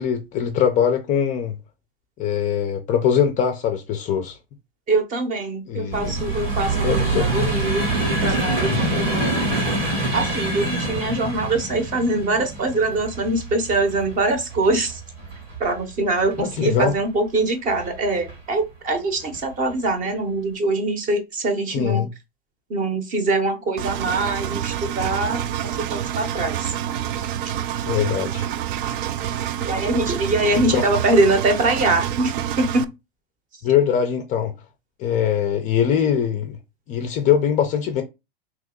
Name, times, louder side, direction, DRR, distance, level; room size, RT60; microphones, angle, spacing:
voice 1, 0.0-1.6 2.2-4.4 5.7-6.2 6.8-7.3 8.6-9.0 16.4-16.9 21.7-22.1 27.8-28.5 30.7-30.8 33.6-34.5 35.0-36.6 36.9-38.0, left 8 dB, 25° left, 0.4 m, -22 dB
voice 2, 4.9-9.4 10.1-15.0 15.6-22.1 22.7-26.7 29.6-32.9, right 2 dB, 25° right, 0.7 m, -23 dB
sound 1, 5.9-17.0 17.7-18.3 19.2-19.4 19.7-19.9, right 2 dB, 85° right, 2.0 m, -26 dB
Engine, 23.8-32.8, right 10 dB, 60° right, 0.4 m, -27 dB
2.9 x 2.6 x 3.7 m
hypercardioid pair, 120°, 31 cm